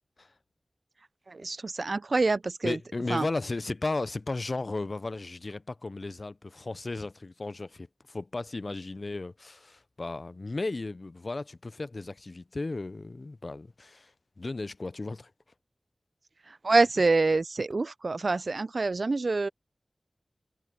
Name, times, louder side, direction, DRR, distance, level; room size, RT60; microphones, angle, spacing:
voice 1, 1.3-2.8 3.1-3.3 16.5-19.5, right 3 dB, 65° right, 0.3 m, -26 dB
voice 2, 2.6-14.1 14.4-15.3, left 3 dB, 55° left, 0.4 m, -35 dB
wide cardioid pair, 45°, 0 cm